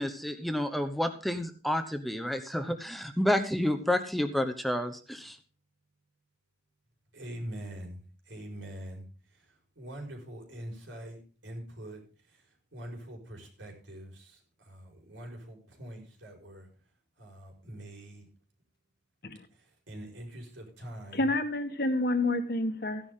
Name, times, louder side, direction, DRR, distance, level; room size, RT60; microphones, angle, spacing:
voice 1, 0.0-5.4, left 1 dB, ahead, 7 dB, 0.9 m, -30 dB
voice 2, 7.1-16.7 17.2-18.3 19.5-21.3, right 1 dB, 90° right, 1 dB, 4.8 m, -44 dB
voice 3, 21.1-23.0, left 2 dB, 55° left, 7 dB, 1.5 m, -28 dB
14.5 x 10.5 x 3.7 m, 0.37 s
head